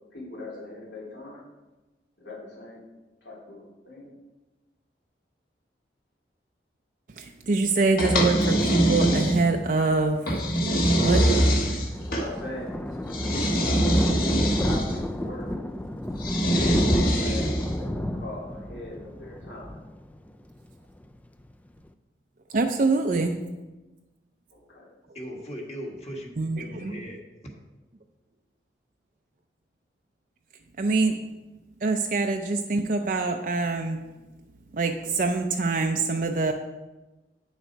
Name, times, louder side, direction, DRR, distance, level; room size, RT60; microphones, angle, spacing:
voice 1, 0.1-1.4 2.2-2.8 3.2-4.1 12.1-13.5 13.9-15.5 16.6-19.8 24.5-24.9, left 2 dB, 80° left, -5 dB, 3.2 m, -41 dB
voice 2, 7.2-10.2 11.0-11.2 22.5-23.4 26.4-26.9 30.8-31.2 31.8-34.0 34.7-36.5, right 3 dB, 50° right, 4 dB, 0.5 m, -25 dB
sound 1, 8.0-9.7 10.3-12.3 13.1-15.0 16.2-17.8, right 1 dB, 55° left, 1.4 m, -23 dB
Thunder, 11.2-20.6 20.9-21.2 21.5-21.6 21.8-21.9, left 1 dB, 10° left, 0.3 m, -31 dB
voice 3, 25.1-27.2, equal, 35° left, 0 dB, 1.5 m, -38 dB
9.1 x 6.5 x 4.5 m, 1.1 s
head